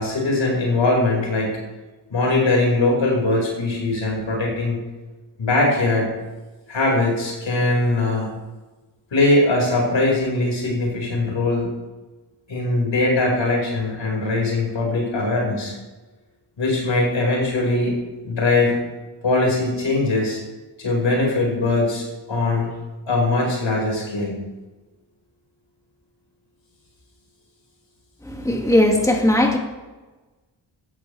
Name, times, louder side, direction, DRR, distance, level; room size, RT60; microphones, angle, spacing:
voice 1, 0.0-1.5 2.1-4.8 5.4-6.1 6.7-8.3 9.1-11.7 12.5-15.7 16.6-17.9 18.2-18.8 19.2-20.4 20.8-22.7 23.1-24.3, left 2 dB, 85° left, -2 dB, 5.4 m, -21 dB
voice 2, 28.3-29.6, left 1 dB, 5° left, 1 dB, 2.1 m, -18 dB
15.5 x 14.0 x 3.4 m, 1.2 s
cardioid pair, 65°, 44 cm